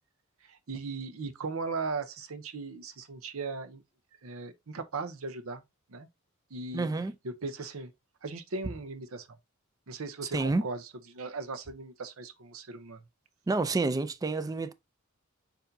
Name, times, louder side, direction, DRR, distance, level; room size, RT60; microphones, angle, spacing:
voice 1, 0.5-3.8 4.2-5.6 5.9-6.1 6.5-6.9 7.2-7.9 8.2-9.4 9.9-13.0, right 3 dB, 75° right, 0.7 m, -38 dB
voice 2, 6.7-7.1 10.3-10.6 13.5-14.7, right 3 dB, 15° right, 0.3 m, -28 dB
6.8 x 2.7 x 2.6 m
head